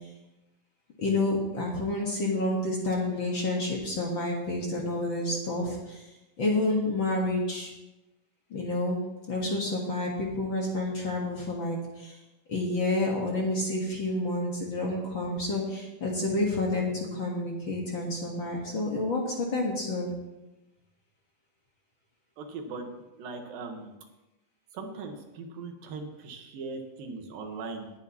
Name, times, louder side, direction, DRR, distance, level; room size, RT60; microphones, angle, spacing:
voice 1, 1.0-6.1 6.4-7.7 8.5-9.0 9.3-12.2 12.5-20.1, left 2 dB, 50° left, -1 dB, 1.5 m, -29 dB
voice 2, 22.4-22.9 23.2-24.0 24.7-27.9, right 4 dB, 75° right, 4 dB, 3.0 m, -39 dB
19.5 x 9.6 x 3.0 m, 1.0 s
omnidirectional pair, 4.2 m